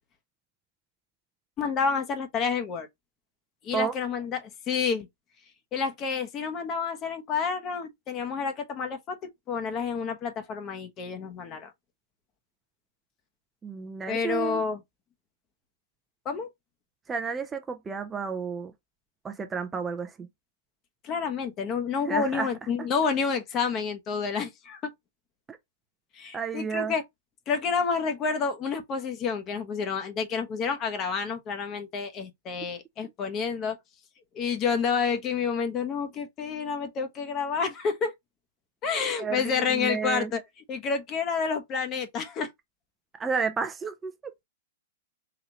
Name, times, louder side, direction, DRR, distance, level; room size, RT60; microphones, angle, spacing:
voice 1, 1.6-2.9 3.6-5.1 5.7-11.7 14.1-14.8 16.2-16.5 21.0-24.8 26.1-27.0 27.5-33.8 34.3-38.1 38.8-40.4 40.7-42.5, left 5 dB, 30° left, 1.0 m, -29 dB
voice 2, 13.6-14.6 17.1-18.7 19.2-20.3 22.1-22.5 22.8-22.9 25.5-25.6 26.3-26.9 39.2-40.3 43.2-44.3, right 5 dB, 15° right, 0.5 m, -31 dB
4.0 x 2.9 x 2.8 m
hypercardioid pair, 115°, 0 cm